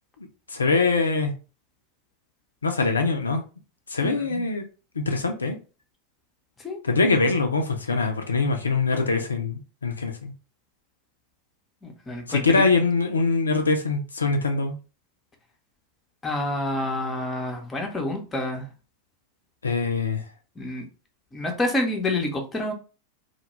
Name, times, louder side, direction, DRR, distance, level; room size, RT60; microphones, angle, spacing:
voice 1, 0.5-1.3 2.6-3.4 3.9-4.6 5.0-5.6 6.8-10.3 12.3-14.8 19.6-20.2, left 3 dB, 75° left, 4 dB, 0.3 m, -23 dB
voice 2, 4.0-4.4 6.6-6.8 11.8-12.6 16.2-18.7 20.6-20.9 21.3-22.7, left 1 dB, 15° left, 2 dB, 0.6 m, -28 dB
2.2 x 2.1 x 2.9 m, 0.34 s
figure-of-eight pair, 90°, 0 cm